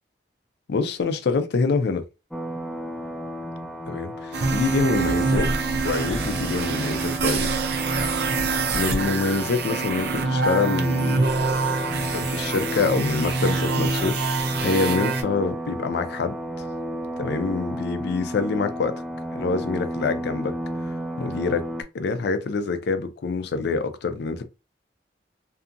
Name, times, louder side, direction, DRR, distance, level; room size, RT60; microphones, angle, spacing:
voice 1, 0.7-2.0 3.9-5.5 5.8-7.5 8.7-11.3 12.0-16.4 17.2-19.0 19.3-20.6 21.2-21.7 21.9-24.4, left 4 dB, 65° left, 0.4 m, -26 dB
sound 1, 2.3-21.8, equal, ahead, 0.4 m, -33 dB
sound 2, 4.3-15.2, right 4 dB, 65° right, 0.5 m, -25 dB
2.7 x 2.4 x 2.5 m
head